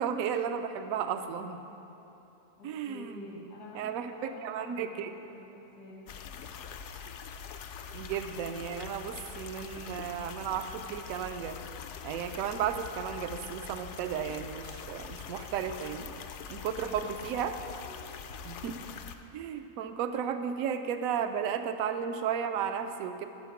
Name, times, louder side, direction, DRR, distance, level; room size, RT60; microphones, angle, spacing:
voice 1, 0.0-1.6 2.6-3.1 3.7-4.1 4.4-5.1 7.9-11.6 12.0-16.2 16.5-17.5 18.4-18.9 19.3-23.3, right 8 dB, 70° right, 8 dB, 1.0 m, -34 dB
voice 2, 2.6-6.1 16.8-18.3, left 2 dB, 90° left, -4 dB, 2.4 m, -49 dB
sound 1, 6.1-19.2, left 7 dB, 70° left, 0.7 m, -44 dB
10.5 x 5.7 x 7.1 m, 2.9 s
omnidirectional pair, 1.7 m